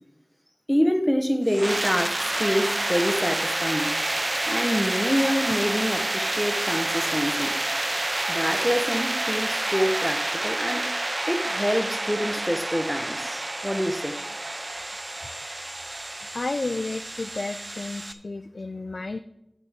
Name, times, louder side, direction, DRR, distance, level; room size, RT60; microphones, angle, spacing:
voice 1, 0.7-4.0 4.2-7.6 8.3-10.9 11.3-14.2, equal, 5° left, 1.0 m, -26 dB
sound 1, 1.5-18.1, right 1 dB, 40° right, 0.4 m, -28 dB
voice 2, 16.3-19.2, left 3 dB, 75° left, 0.4 m, -32 dB
15.0 x 6.3 x 3.6 m
wide cardioid pair, 55°, 0 cm